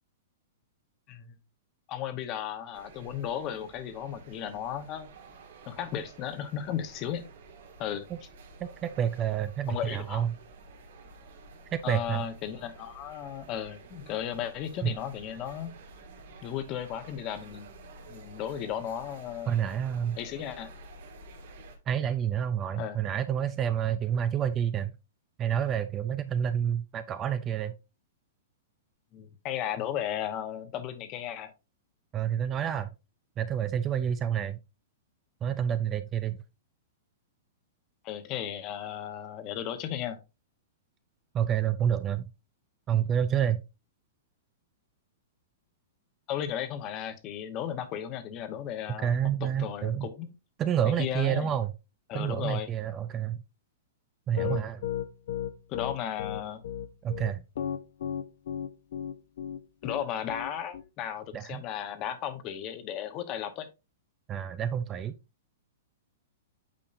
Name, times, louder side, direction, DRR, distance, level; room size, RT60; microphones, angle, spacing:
voice 1, 1.9-5.1 5.7-7.2 7.8-8.1 9.7-10.2 11.8-15.7 16.4-17.7 18.1-19.5 20.2-20.7 22.8-23.0 29.1-31.5 38.0-40.2 46.3-50.3 50.8-51.5 52.1-52.7 54.4-54.7 55.7-56.6 59.8-63.7, left 10 dB, 30° left, 1.0 m, -35 dB
sound 1, 2.7-21.8, right 2 dB, 65° right, 2.0 m, -51 dB
voice 2, 8.6-10.3 11.7-12.2 14.8-14.9 19.5-20.2 21.9-24.9 25.4-27.7 32.1-32.9 33.4-34.6 35.4-36.4 41.3-42.3 42.9-43.6 49.0-50.1 50.6-51.7 52.1-53.4 54.3-54.8 57.0-57.4 61.3-61.6 64.3-65.1, right 9 dB, 20° right, 0.4 m, -28 dB
Piano, 54.4-60.8, left 9 dB, 65° left, 0.8 m, -34 dB
8.7 x 5.3 x 2.6 m
hypercardioid pair, 160°, 0 cm